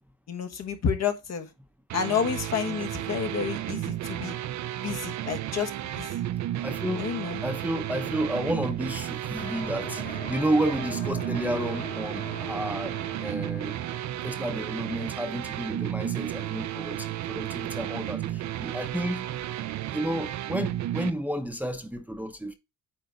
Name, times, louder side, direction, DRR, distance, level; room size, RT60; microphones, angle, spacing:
voice 1, 0.3-1.5 1.9-4.4 4.8-6.2 7.0-7.4, left 7 dB, 60° left, 1.3 m, -30 dB
sound 1, 1.9-21.1, right 13 dB, 70° right, 0.6 m, -33 dB
voice 2, 6.6-7.1 7.4-13.0 13.2-13.8 14.2-19.2 19.9-22.5, right 1 dB, 5° right, 0.8 m, -31 dB
sound 2, 9.4-16.1, left 4 dB, 30° left, 1.2 m, -43 dB
8.8 x 3.5 x 3.9 m
cardioid pair, 90°, 30 cm